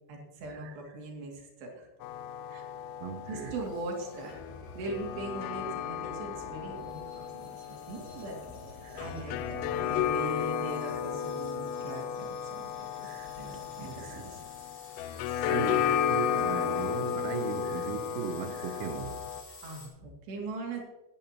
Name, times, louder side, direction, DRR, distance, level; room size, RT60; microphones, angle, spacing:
voice 1, 0.1-1.9 2.5-2.7 3.3-4.3 4.8-8.4 8.7-13.1 13.4-14.4 15.3-15.7 19.6-20.8, right 2 dB, 60° right, 4.4 m, -41 dB
sound 1, 2.0-19.4, left 9 dB, 90° left, 3.3 m, -34 dB
voice 2, 3.0-3.6 8.8-9.1 10.8-11.1 13.0-13.4 13.8-14.3 15.4-19.2, right 7 dB, 85° right, 3.4 m, -38 dB
sound 2, 3.4-19.9, left 2 dB, 35° left, 4.6 m, -51 dB
18.5 x 11.0 x 3.0 m
omnidirectional pair, 5.9 m